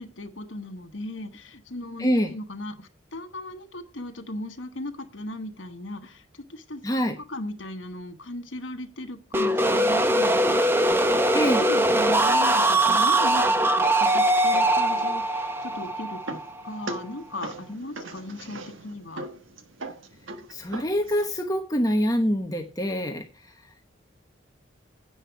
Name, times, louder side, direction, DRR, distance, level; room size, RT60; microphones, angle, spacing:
voice 1, 0.0-6.8 7.2-19.3, left 1 dB, 75° left, 6 dB, 1.3 m, -37 dB
voice 2, 2.0-2.3 6.8-7.2 11.3-11.6 20.5-23.5, equal, 20° left, 4 dB, 1.1 m, -25 dB
sound 1, 9.3-17.0, right 1 dB, 10° right, 0.7 m, -22 dB
sound 2, 15.5-21.3, right 2 dB, 85° right, 1.4 m, -40 dB
10.0 x 8.4 x 4.6 m, 0.30 s
head